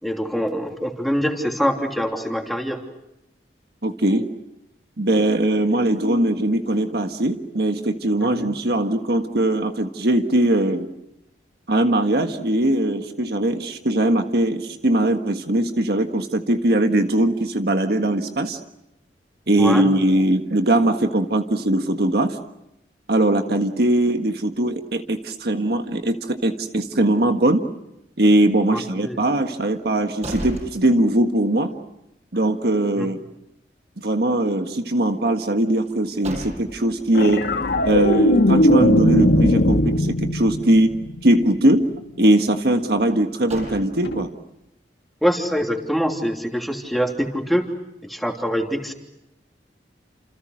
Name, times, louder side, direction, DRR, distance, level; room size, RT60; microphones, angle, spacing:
voice 1, 0.0-2.8 8.2-8.5 19.5-19.9 28.7-29.2 32.9-33.1 45.2-47.7 48.0-48.9, equal, ahead, 2 dB, 3.1 m, -24 dB
voice 2, 3.8-4.3 5.0-10.9 11.7-18.6 19.5-22.4 23.1-27.6 28.2-31.7 32.3-33.2 34.0-37.4 37.8-40.9 41.2-41.8 42.2-44.3, right 1 dB, 60° right, 6 dB, 1.6 m, -20 dB
sound 1, 29.9-31.5 31.9-32.0 35.8-37.0 43.1-44.3, right 1 dB, 40° right, 7.3 m, -36 dB
sound 2, 37.1-41.6 44.0-44.2, left 1 dB, 75° left, 1.9 m, -19 dB
30.0 x 28.0 x 6.4 m, 0.85 s
head